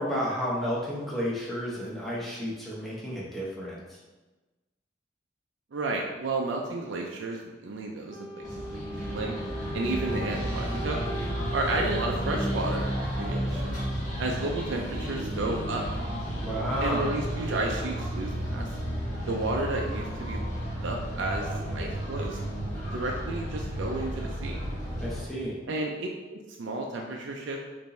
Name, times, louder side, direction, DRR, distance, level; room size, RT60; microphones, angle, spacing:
voice 1, 0.0-4.0 16.4-17.2 25.0-25.6, equal, ahead, -7 dB, 1.0 m, -32 dB
voice 2, 5.7-9.3 9.7-11.0 11.5-13.8 14.2-15.8 16.8-18.7 19.3-20.5 20.8-22.4 22.9-24.6 25.7-27.6, right 2 dB, 80° right, 1 dB, 0.5 m, -32 dB
Wind instrument woodwind instrument, 8.1-13.1, equal, 20° right, 1.3 m, -40 dB
sound 1, 8.4-25.2, equal, 45° left, 1.4 m, -32 dB
5.2 x 2.6 x 3.2 m, 1.2 s
head